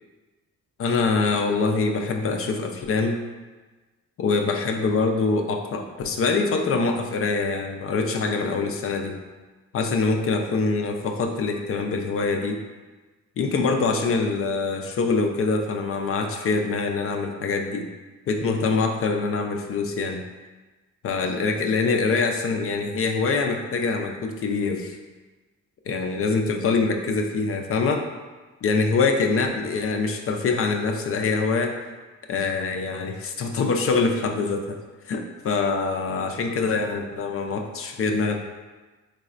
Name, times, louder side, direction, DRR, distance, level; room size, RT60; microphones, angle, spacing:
voice 1, 0.8-3.2 4.2-9.2 9.7-12.6 13.4-17.9 18.3-20.2 21.0-25.0 25.9-28.1 28.6-31.8 32.3-34.8 35.1-38.4, left 4 dB, 50° left, 4 dB, 0.4 m, -24 dB
4.1 x 3.1 x 2.4 m, 1.3 s
cardioid pair, 90°, 30 cm